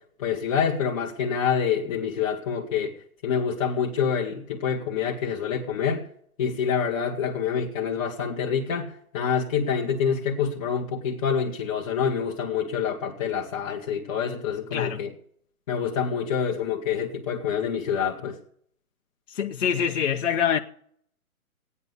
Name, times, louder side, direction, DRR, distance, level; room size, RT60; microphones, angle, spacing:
voice 1, 0.2-2.9 3.2-6.0 6.4-15.1 15.7-18.4, left 7 dB, 25° left, 1.1 m, -27 dB
voice 2, 19.3-20.6, left 8 dB, 55° left, 0.9 m, -25 dB
17.0 x 9.7 x 5.4 m
hypercardioid pair, 160°, 44 cm